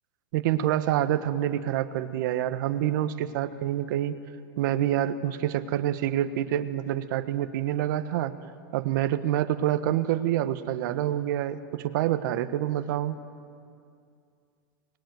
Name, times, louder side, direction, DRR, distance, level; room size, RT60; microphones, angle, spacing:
voice 1, 0.3-4.1 4.6-8.3 8.7-13.2, right 12 dB, 65° right, 10 dB, 1.4 m, -27 dB
23.5 x 20.5 x 9.5 m, 2.4 s
hypercardioid pair, 125°, 11 cm